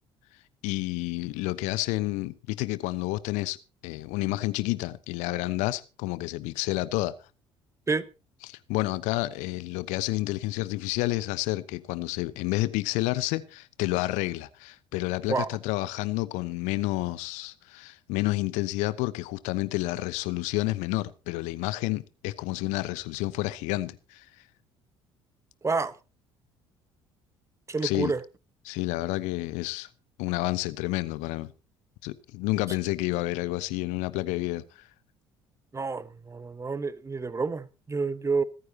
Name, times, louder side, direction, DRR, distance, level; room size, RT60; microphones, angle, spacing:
voice 1, 0.6-3.6 3.8-7.1 8.4-24.3 27.8-28.1 28.6-29.9 30.2-31.5 32.0-34.6, left 19 dB, 60° left, 0.9 m, -30 dB
voice 2, 25.6-25.9 27.7-28.2 35.7-38.4, right 4 dB, 20° right, 1.2 m, -29 dB
26.0 x 9.5 x 2.8 m
figure-of-eight pair, 55°, 14 cm